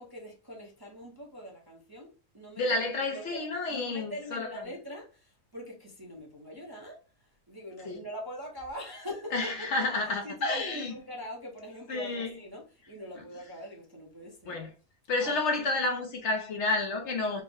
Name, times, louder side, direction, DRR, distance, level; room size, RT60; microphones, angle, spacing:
voice 1, 0.0-9.9 10.2-14.6 15.2-15.4, equal, 20° right, 0.7 m, -43 dB
voice 2, 2.6-4.5 7.9-8.0 9.3-10.9 11.9-12.3 14.5-14.7 15.1-17.4, left 2 dB, 60° left, 1.0 m, -30 dB
4.4 x 2.1 x 3.5 m
omnidirectional pair, 1.5 m